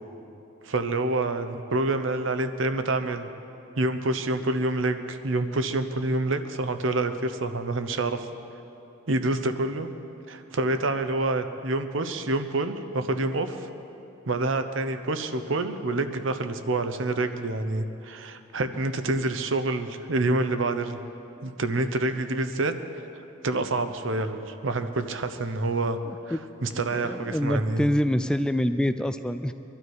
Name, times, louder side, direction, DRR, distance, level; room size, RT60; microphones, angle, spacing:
voice 1, 0.6-3.3 3.8-8.3 9.1-9.9 10.3-13.7 14.3-21.0 21.4-22.7 23.4-26.0 26.3-26.4 26.6-27.9, right 2 dB, 70° right, 9 dB, 0.9 m, -27 dB
voice 2, 26.1-29.5, equal, 5° left, 10 dB, 0.3 m, -27 dB
23.5 x 12.0 x 4.8 m, 2.9 s
head